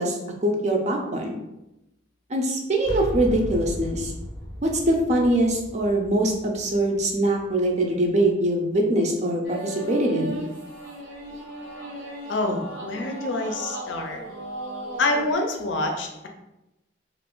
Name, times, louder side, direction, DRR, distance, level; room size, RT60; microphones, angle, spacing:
voice 1, 0.0-1.4 2.3-4.1 4.6-10.4, right 1 dB, 35° right, 1 dB, 0.5 m, -23 dB
sound 1, 2.8-8.5, equal, 20° left, 0.7 m, -36 dB
sound 2, 9.4-15.3, right 1 dB, 75° right, 0.7 m, -37 dB
voice 2, 12.3-14.2 15.0-16.3, left 2 dB, 75° left, 3 dB, 0.5 m, -26 dB
2.5 x 2.5 x 3.6 m, 0.92 s
head